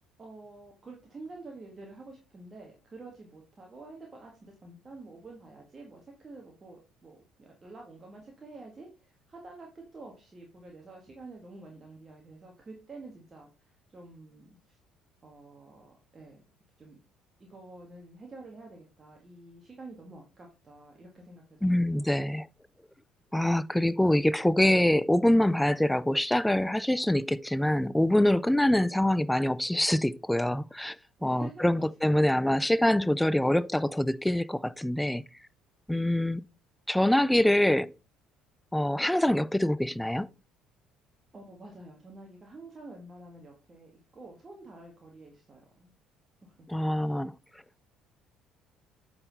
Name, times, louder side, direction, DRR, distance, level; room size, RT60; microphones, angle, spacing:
voice 1, 0.2-14.8 15.2-16.4 16.8-17.0 17.4-22.2 31.2-31.9 41.3-45.9 46.4-46.7, right 2 dB, 30° right, 1.7 m, -48 dB
voice 2, 21.6-22.5 23.3-31.0 31.2-35.2 35.9-36.4 36.9-37.9 38.7-40.3 46.7-47.3, left 1 dB, 5° left, 0.4 m, -25 dB
8.6 x 4.3 x 4.0 m
figure-of-eight pair, 55°, 0 cm